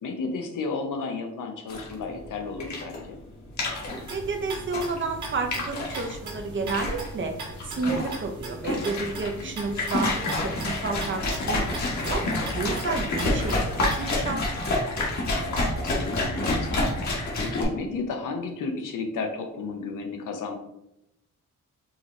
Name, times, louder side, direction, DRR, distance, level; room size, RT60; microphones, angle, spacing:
voice 1, 0.0-3.2 9.3-9.5 15.4-20.6, left 4 dB, 85° left, 4 dB, 0.8 m, -33 dB
sound 1, 1.7-17.6, left 2 dB, 65° left, 1.3 m, -28 dB
sound 2, 3.8-14.1, right 1 dB, 65° right, 1.6 m, -40 dB
voice 2, 4.1-7.4 7.6-12.2 12.5-14.4, right 4 dB, 40° right, 5 dB, 0.6 m, -31 dB
4.9 x 2.9 x 3.1 m, 0.85 s
wide cardioid pair, 130°, 31 cm